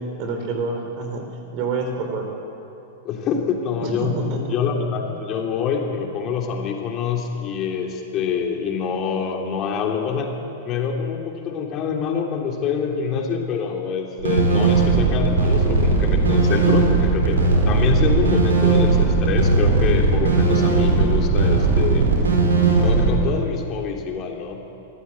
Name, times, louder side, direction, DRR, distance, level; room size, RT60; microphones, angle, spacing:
voice 1, 0.2-2.3 3.8-4.7 5.1-5.2, right 3 dB, 40° right, 4 dB, 4.1 m, -28 dB
voice 2, 3.0-4.2 4.5-10.3 10.6-17.4 17.7-22.0 22.8-24.6, left 6 dB, 35° left, 1 dB, 3.1 m, -25 dB
sound 1, 14.2-23.1, right 3 dB, 70° right, 4.9 m, -18 dB
23.0 x 14.5 x 8.6 m, 2.7 s
figure-of-eight pair, 95°, 0 cm